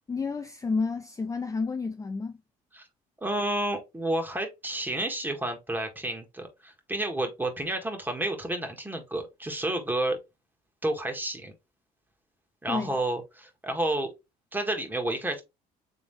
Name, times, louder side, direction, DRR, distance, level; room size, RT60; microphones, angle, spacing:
voice 1, 0.1-2.4 12.7-12.9, left 4 dB, 20° left, 0.5 m, -30 dB
voice 2, 3.2-10.2 10.8-11.5 12.6-14.1 14.5-15.4, right 1 dB, 10° right, 1.7 m, -30 dB
3.8 x 3.4 x 3.3 m
supercardioid pair, 80°, 17 cm